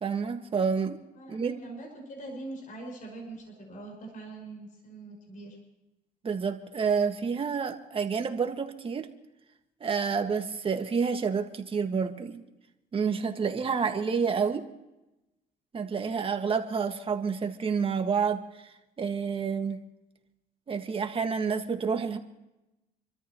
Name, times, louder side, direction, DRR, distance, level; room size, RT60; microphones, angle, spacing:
voice 1, 0.0-1.0 1.3-1.6 6.2-9.1 9.8-12.4 12.9-14.7 15.7-18.4 19.0-19.8 20.7-22.2, right 6 dB, 35° right, 5 dB, 1.8 m, -29 dB
voice 2, 1.2-5.6, right 2 dB, 50° left, 1 dB, 5.8 m, -43 dB
28.0 x 13.5 x 3.1 m, 0.97 s
cardioid pair, 110°, 17 cm